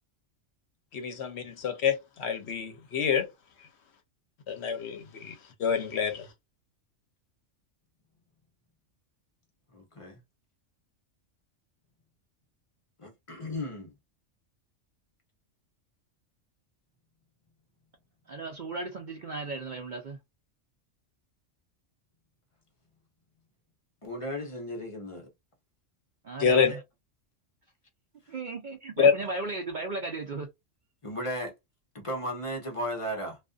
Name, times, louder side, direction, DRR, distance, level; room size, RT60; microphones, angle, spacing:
voice 1, 0.9-3.3 4.5-6.3 26.4-26.7 29.0-29.1, left 6 dB, 65° left, 0.9 m, -26 dB
voice 2, 9.7-10.2 13.0-13.9 24.0-25.3 26.5-26.8 31.0-31.5 31.9-33.4, equal, 35° left, 0.6 m, -35 dB
voice 3, 18.3-20.2 26.2-26.8 28.3-30.5, right 3 dB, 60° right, 0.5 m, -36 dB
2.4 x 2.4 x 2.3 m
omnidirectional pair, 1.3 m